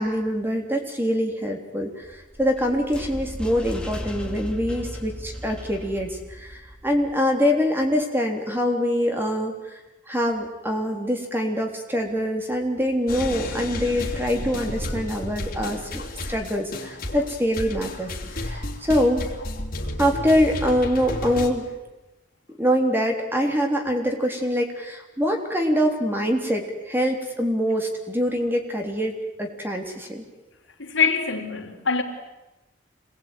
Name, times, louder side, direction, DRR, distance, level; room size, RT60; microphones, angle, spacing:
voice 1, 0.0-9.5 10.1-16.0 16.3-19.2 20.0-21.7 22.6-30.2, equal, 10° right, 3.5 m, -24 dB
sound 1, 2.0-7.2, equal, 5° left, 2.8 m, -36 dB
sound 2, 13.1-21.5, left 1 dB, 50° left, 3.6 m, -32 dB
voice 2, 30.8-32.0, left 5 dB, 85° left, 3.7 m, -23 dB
26.5 x 20.5 x 9.3 m
head